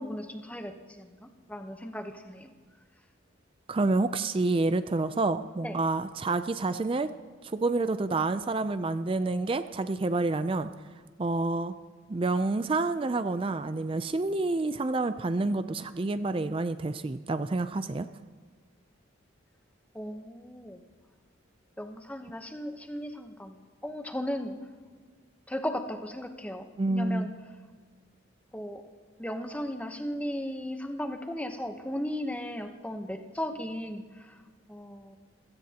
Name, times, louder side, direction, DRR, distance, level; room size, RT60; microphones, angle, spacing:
voice 1, 0.0-2.5 5.6-5.8 19.9-20.8 21.8-24.5 25.5-27.3 28.5-28.8 29.2-34.4 34.7-35.2, equal, 5° left, 5 dB, 0.9 m, -36 dB
voice 2, 3.7-7.1 7.4-10.7 11.2-11.8 12.1-18.1 26.8-27.3, right 2 dB, 25° right, 11 dB, 0.4 m, -28 dB
26.5 x 16.5 x 2.9 m, 1.5 s
head